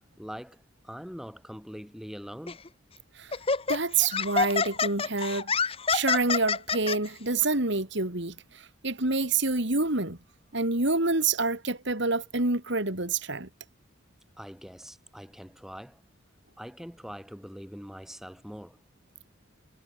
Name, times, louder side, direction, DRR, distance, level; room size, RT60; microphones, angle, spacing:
voice 1, 0.2-2.6 14.4-16.0 16.6-18.8, equal, ahead, 5.0 m, -43 dB
Laughter, 2.5-2.7 3.3-7.0, left 5 dB, 30° left, 1.1 m, -27 dB
voice 2, 3.7-5.5 5.9-10.2 10.5-13.5, right 3 dB, 60° right, 3.3 m, -27 dB
head